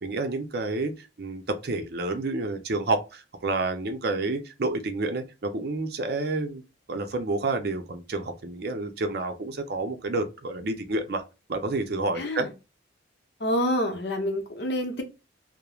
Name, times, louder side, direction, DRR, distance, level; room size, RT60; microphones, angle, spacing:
voice 1, 0.0-6.6 6.9-11.2 11.5-12.5, right 2 dB, 55° right, 0.5 m, -29 dB
voice 2, 12.2-12.5 13.4-15.0, equal, 60° left, 0.7 m, -27 dB
3.0 x 2.0 x 2.3 m
head